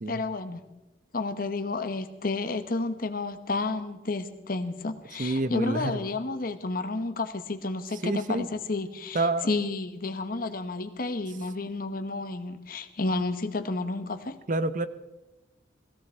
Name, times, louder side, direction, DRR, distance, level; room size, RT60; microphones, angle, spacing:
voice 1, 0.1-0.6 1.1-14.4, left 3 dB, 50° left, 10 dB, 1.1 m, -31 dB
voice 2, 5.2-6.1 8.0-8.5 9.1-9.5 14.5-14.9, right 2 dB, 45° right, 13 dB, 0.7 m, -28 dB
17.5 x 16.5 x 4.5 m, 1.0 s
head